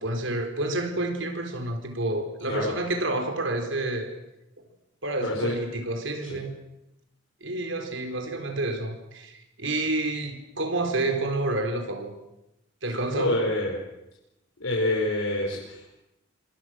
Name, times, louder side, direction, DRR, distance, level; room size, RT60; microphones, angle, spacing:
voice 1, 0.0-4.1 5.0-6.5 7.4-12.1 12.8-13.4, right 2 dB, 75° right, 4.2 m, -29 dB
voice 2, 5.2-5.6 6.3-6.4 13.2-13.8 14.6-16.0, left 1 dB, 90° left, 5.4 m, -27 dB
28.0 x 26.0 x 6.4 m
head